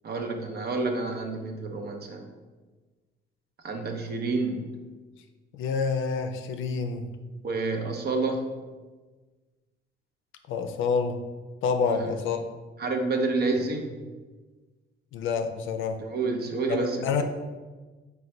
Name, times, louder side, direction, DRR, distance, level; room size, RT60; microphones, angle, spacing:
voice 1, 0.0-2.2 3.6-4.7 7.4-8.5 11.8-12.1 12.8-13.9 16.0-17.2, right 3 dB, 55° right, 4 dB, 0.6 m, -29 dB
voice 2, 5.5-7.1 10.5-11.2 11.6-12.4 15.1-16.0 16.7-17.2, left 5 dB, 80° left, 7 dB, 0.4 m, -27 dB
3.9 x 2.2 x 4.4 m, 1.3 s
cardioid pair, 90°, 20 cm